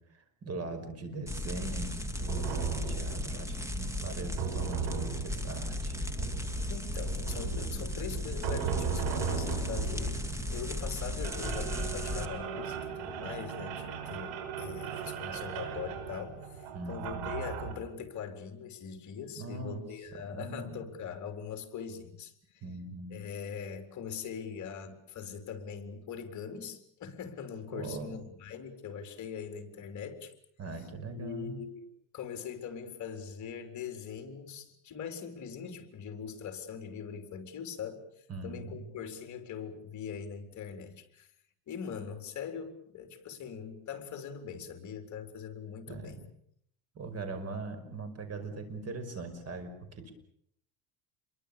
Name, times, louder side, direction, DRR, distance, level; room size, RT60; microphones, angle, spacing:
voice 1, 0.1-6.0 16.7-17.2 19.4-19.8 20.1-20.9 22.6-23.2 27.7-28.2 30.6-31.6 38.3-38.9 45.9-46.2 46.9-50.1, right 3 dB, 35° right, 9 dB, 5.6 m, -41 dB
sound 1, 1.3-12.3, left 1 dB, 5° right, 2.1 m, -35 dB
sound 2, 2.3-17.7, right 7 dB, 70° right, 6.5 m, -38 dB
voice 2, 6.7-22.6 23.1-30.3 31.1-31.8 32.1-41.3 41.7-46.2, left 7 dB, 40° left, 6 dB, 4.2 m, -42 dB
28.5 x 23.0 x 7.0 m, 0.70 s
cardioid pair, 130°, 45 cm